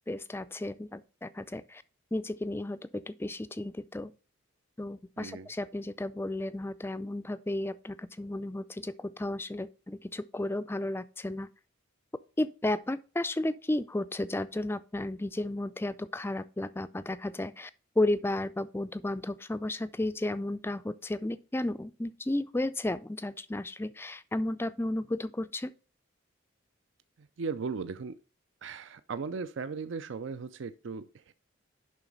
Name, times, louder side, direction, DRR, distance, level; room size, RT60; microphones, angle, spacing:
voice 1, 0.1-1.8 2.1-4.1 4.8-11.5 12.4-17.7 18.0-25.7, left 1 dB, 10° left, 0.4 m, -33 dB
voice 2, 5.2-5.5 27.2-28.2 28.6-31.3, right 5 dB, 65° right, 0.4 m, -37 dB
11.0 x 3.9 x 5.3 m
head